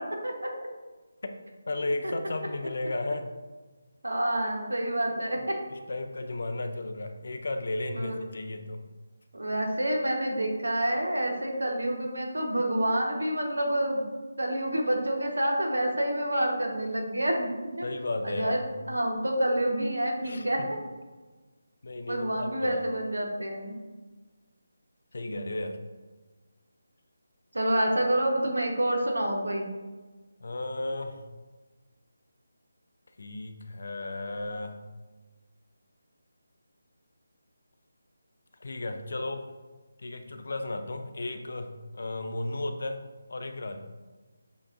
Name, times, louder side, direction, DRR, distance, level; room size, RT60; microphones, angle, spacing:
voice 1, 1.7-3.3 5.4-5.5 5.7-8.8 17.8-18.8 20.2-20.7 21.8-22.8 25.1-25.8 30.4-31.2 33.2-34.8 38.6-39.5 40.0-43.0 43.3-43.8, left 2 dB, 60° left, 7 dB, 0.4 m, -34 dB
voice 2, 4.0-5.5 8.0-8.2 9.3-14.1 14.4-17.5 17.8-17.9 18.2-18.6 18.9-20.6 22.1-23.8 25.3-25.4 27.5-29.7, right 1 dB, 75° right, 1 dB, 0.9 m, -28 dB
6.7 x 2.4 x 2.4 m, 1.3 s
figure-of-eight pair, 155°, 0 cm